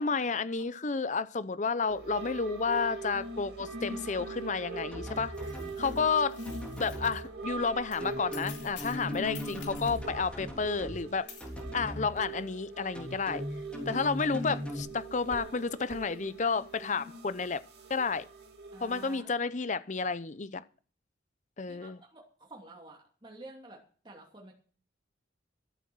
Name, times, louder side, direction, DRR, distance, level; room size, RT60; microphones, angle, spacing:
voice 1, 0.0-5.3 5.8-6.4 6.8-11.3 11.7-13.4 13.9-17.6 17.9-18.2 18.8-20.6 21.6-22.0, left 4 dB, 40° left, 0.7 m, -31 dB
sound 1, 1.9-19.2, right 2 dB, 60° right, 2.8 m, -42 dB
sound 2, 4.9-6.0 6.5-7.1 8.0-11.0 11.4-12.1 13.0-14.8, left 1 dB, 5° left, 3.2 m, -39 dB
sound 3, 5.1-7.3 7.9-10.1 11.3-11.6, left 8 dB, 70° left, 3.3 m, -50 dB
voice 2, 18.7-19.3 21.7-23.8 24.0-24.5, right 2 dB, 25° right, 2.6 m, -50 dB
13.5 x 8.1 x 6.2 m
head